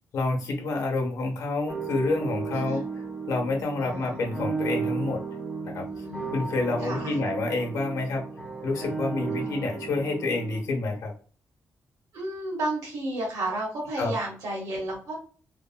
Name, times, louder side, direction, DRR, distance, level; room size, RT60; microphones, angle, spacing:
voice 1, 0.1-2.8 3.3-5.2 5.6-5.9 6.3-8.3 8.6-11.1 14.0-14.2, left 3 dB, 75° left, 2 dB, 0.8 m, -28 dB
sound 1, 1.7-10.6, right 4 dB, 10° right, 1.0 m, -34 dB
voice 2, 3.8-4.2 5.8-6.5 6.8-7.2 9.3-9.6 12.1-15.2, right 1 dB, 90° right, -2 dB, 1.0 m, -33 dB
3.2 x 2.1 x 2.3 m, 0.42 s
wide cardioid pair, 150°, 6 cm